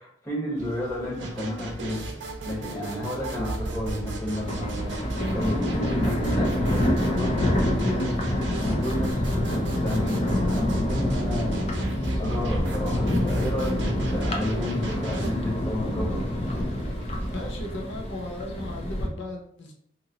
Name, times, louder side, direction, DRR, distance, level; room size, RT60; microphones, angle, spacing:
voice 1, 0.0-2.1 2.4-8.2 8.6-11.6 12.2-16.3, left 1 dB, 15° left, -6 dB, 1.0 m, -32 dB
sound 1, 0.6-17.6, right 1 dB, 45° right, 0.8 m, -40 dB
sound 2, 1.2-15.3, right 2 dB, 90° right, 0.6 m, -36 dB
Thunder, 4.3-19.1, left 1 dB, 35° left, 0.5 m, -27 dB
voice 2, 17.3-19.7, left 2 dB, 90° left, 0 dB, 0.6 m, -36 dB
2.8 x 2.5 x 2.8 m, 0.67 s
head